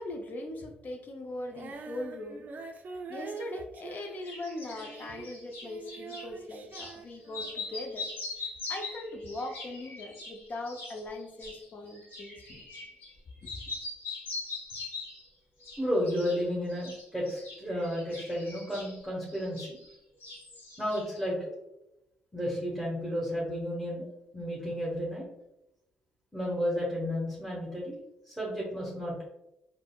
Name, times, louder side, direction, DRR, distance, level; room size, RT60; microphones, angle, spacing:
voice 1, 0.0-2.4 2.9-8.1 8.4-12.6 13.4-13.5, left 1 dB, 50° left, 3 dB, 0.5 m, -40 dB
Female singing, 1.5-7.9 8.5-8.6, right 4 dB, 50° right, 0.4 m, -45 dB
sound 1, 4.0-6.3 6.7-7.0 7.3-13.2 13.4-15.3 15.6-16.4 16.7-20.0 20.2-21.2, left 3 dB, 70° left, 0.9 m, -42 dB
voice 2, 15.8-19.8 20.8-21.4 22.3-24.1 24.3-25.3 26.3-28.0 28.3-29.2, equal, 5° left, -5 dB, 1.0 m, -32 dB
3.7 x 2.0 x 2.2 m, 0.88 s
supercardioid pair, 60°, 4 cm